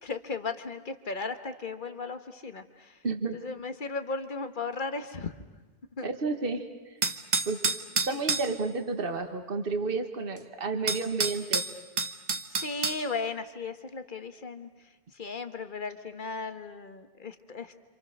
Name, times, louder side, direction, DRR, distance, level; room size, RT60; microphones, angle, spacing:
voice 1, 0.0-3.0 3.3-5.3 6.0-6.1 8.0-8.2 12.5-14.7 15.1-17.7, left 4 dB, 50° left, 9 dB, 1.6 m, -36 dB
voice 2, 3.0-3.4 6.0-6.7 7.5-7.6 8.1-11.6, right 4 dB, 55° right, 6 dB, 1.8 m, -31 dB
sound 1, 7.0-8.5 10.4-10.5 10.9-13.0, right 4 dB, 40° right, 1.1 m, -29 dB
27.5 x 27.5 x 6.7 m, 1.2 s
omnidirectional pair, 1.1 m